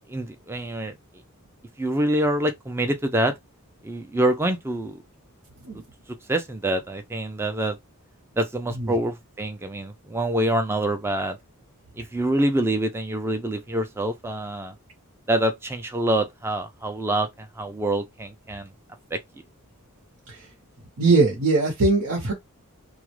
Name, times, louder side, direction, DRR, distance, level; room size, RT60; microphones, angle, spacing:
voice 1, 0.1-0.9 1.8-3.3 3.8-5.0 6.3-7.8 8.4-11.4 12.0-14.7 15.3-18.7 19.1-19.2, right 1 dB, 10° right, 0.3 m, -26 dB
voice 2, 21.0-22.3, right 3 dB, 85° right, 0.8 m, -20 dB
2.3 x 2.0 x 3.0 m
head